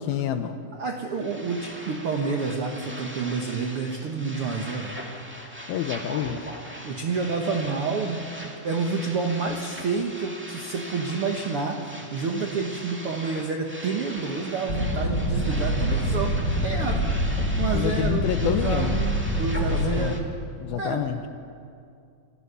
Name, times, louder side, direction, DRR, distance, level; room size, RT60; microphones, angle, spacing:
voice 1, 0.0-0.6 5.7-6.5 17.7-19.0 19.7-20.2 20.6-21.2, left 10 dB, 80° left, 8 dB, 2.6 m, -28 dB
voice 2, 0.7-5.0 6.8-17.0 17.6-20.4 20.8-21.0, right 4 dB, 65° right, 2 dB, 1.4 m, -29 dB
sound 1, 1.1-20.2, equal, 20° right, 0.3 m, -40 dB
sound 2, 14.7-20.1, equal, 25° left, 3.3 m, -25 dB
28.5 x 15.0 x 6.9 m, 2.4 s
omnidirectional pair, 4.3 m